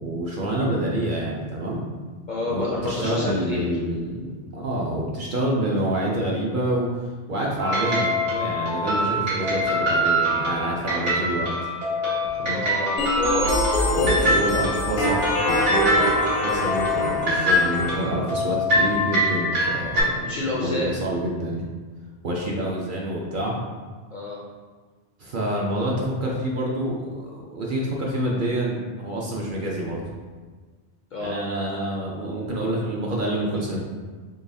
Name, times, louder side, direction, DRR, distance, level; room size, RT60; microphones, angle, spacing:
voice 1, 0.0-1.9 2.5-6.9 7.3-11.5 12.4-12.6 13.9-16.2 16.4-20.3 20.6-21.6 22.2-23.5 25.2-30.0 31.2-33.9, right 1 dB, 55° right, -3 dB, 0.6 m, -27 dB
voice 2, 2.3-3.7 12.4-14.4 20.3-21.0 24.1-24.4 31.1-31.4, left 2 dB, 55° left, -3 dB, 0.5 m, -29 dB
sound 1, 7.6-20.0, equal, 85° right, 1.7 m, -24 dB
sound 2, 13.0-18.0, equal, 75° left, 1.1 m, -24 dB
3.9 x 3.3 x 2.6 m, 1.4 s
omnidirectional pair, 1.2 m